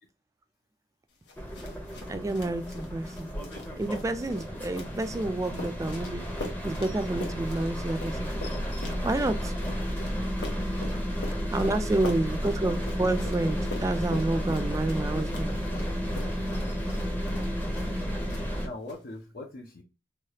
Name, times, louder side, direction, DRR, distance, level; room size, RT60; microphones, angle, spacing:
sound 1, 1.3-18.0 18.3-18.9, left 2 dB, 85° left, 0.9 m, -43 dB
sound 2, 1.4-18.7, equal, 10° left, 0.7 m, -32 dB
voice 1, 2.1-3.3 3.8-6.2 6.6-8.3 9.0-9.4 11.5-15.5, right 2 dB, 20° right, 0.3 m, -29 dB
voice 2, 11.3-12.2 13.6-13.7 16.4-16.5 18.3-19.8, left 2 dB, 55° left, 0.6 m, -43 dB
3.2 x 2.3 x 2.8 m
head